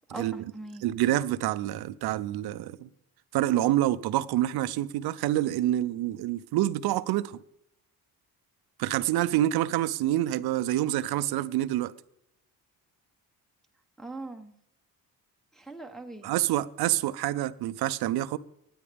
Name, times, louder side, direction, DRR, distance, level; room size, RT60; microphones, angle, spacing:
voice 1, 0.1-0.8 14.0-14.5 15.5-16.3, right 2 dB, ahead, 1.0 m, -41 dB
voice 2, 0.8-2.9 3.3-7.4 8.8-11.9 16.2-18.4, right 14 dB, 85° right, 0.6 m, -27 dB
24.5 x 9.7 x 3.4 m
cardioid pair, 125°, 37 cm